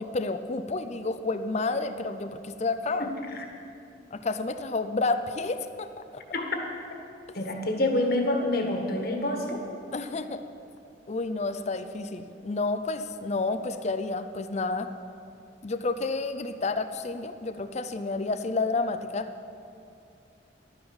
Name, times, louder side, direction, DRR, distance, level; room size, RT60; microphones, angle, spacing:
voice 1, 0.0-3.1 4.1-6.2 9.9-10.4 11.1-14.9 15.6-19.3, left 3 dB, 35° left, 9 dB, 0.5 m, -30 dB
voice 2, 7.3-9.6, left 1 dB, 55° left, 2 dB, 1.6 m, -27 dB
11.5 x 9.6 x 7.1 m, 2.6 s
head